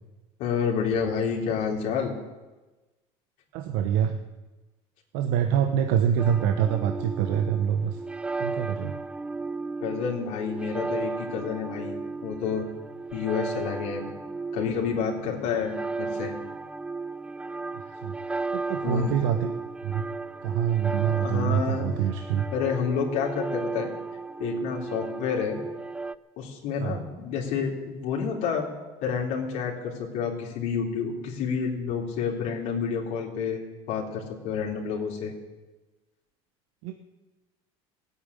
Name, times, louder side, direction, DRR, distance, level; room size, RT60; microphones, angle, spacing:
voice 1, 0.4-2.1 9.8-11.9 12.2-12.7 13.1-14.2 14.5-16.3 18.8-19.1 21.0-21.9 22.5-23.9 24.4-25.6 26.4-28.7 29.0-33.6 33.9-35.3, left 6 dB, 70° left, -2 dB, 3.4 m, -29 dB
voice 2, 3.5-4.2 5.1-8.0 8.4-9.0 18.0-18.2 18.5-19.5 19.8-20.0 20.4-22.5 26.8-27.0 36.8-36.9, right 9 dB, 75° right, 6 dB, 1.1 m, -25 dB
sound 1, 6.2-26.1, right 3 dB, 10° right, 0.4 m, -35 dB
16.0 x 8.9 x 9.8 m, 1.2 s
supercardioid pair, 115°, 14 cm